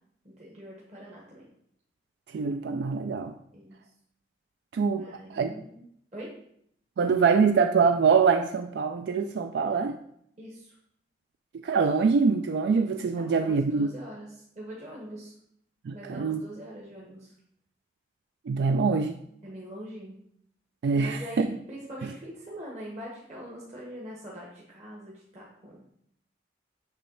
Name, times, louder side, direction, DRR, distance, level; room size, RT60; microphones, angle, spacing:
voice 1, 0.2-1.5 3.5-3.8 5.0-5.8 6.1-6.4 10.4-10.7 13.2-15.3 15.9-17.3 19.4-20.2 21.0-26.0, equal, 40° right, -5 dB, 1.2 m, -43 dB
voice 2, 2.3-3.3 4.7-5.5 7.0-10.0 11.6-13.9 15.9-16.4 18.5-19.2 20.8-21.5, right 5 dB, 70° right, 6 dB, 0.3 m, -24 dB
7.3 x 3.1 x 5.5 m, 0.70 s
head